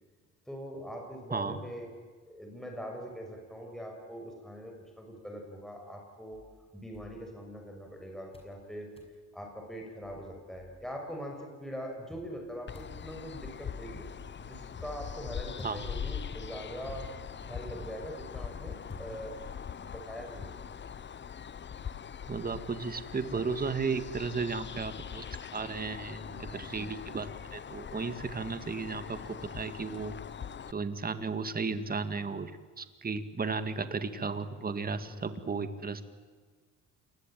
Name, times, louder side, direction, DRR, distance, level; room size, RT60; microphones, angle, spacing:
voice 1, 0.5-1.9 2.3-6.4 6.7-8.9 9.3-14.0 14.4-20.6 26.0-26.7 35.0-35.3, equal, ahead, 2 dB, 6.4 m, -43 dB
sound 1, 6.3-7.9 8.3-8.6 9.0-9.2 9.7-9.8 10.0-11.1 12.1-19.7, equal, 20° left, 6.6 m, -51 dB
sound 2, 12.7-30.7, left 7 dB, 35° left, 0.9 m, -42 dB
voice 2, 15.6-16.0 22.3-25.2 25.5-30.2 30.7-32.5 32.8-36.0, right 4 dB, 30° right, 10 dB, 2.1 m, -34 dB
27.5 x 21.0 x 9.3 m, 1.5 s
cardioid pair, 90°, 30 cm